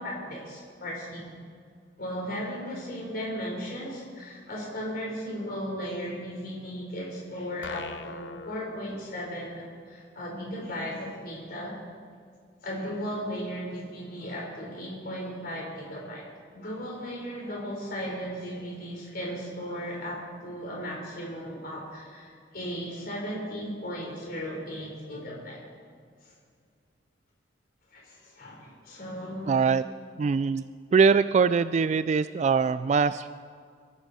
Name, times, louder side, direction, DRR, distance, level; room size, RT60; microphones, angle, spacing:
voice 1, 0.0-1.4 2.0-11.7 12.6-16.3 16.5-25.7 27.9-29.5, equal, 55° left, -3 dB, 3.9 m, -36 dB
sound 1, 7.6-9.6, left 5 dB, 80° left, 0.8 m, -43 dB
voice 2, 29.5-29.8 30.2-30.6 30.9-33.4, right 5 dB, 40° right, 13 dB, 0.3 m, -22 dB
24.0 x 13.5 x 4.2 m, 2.1 s
head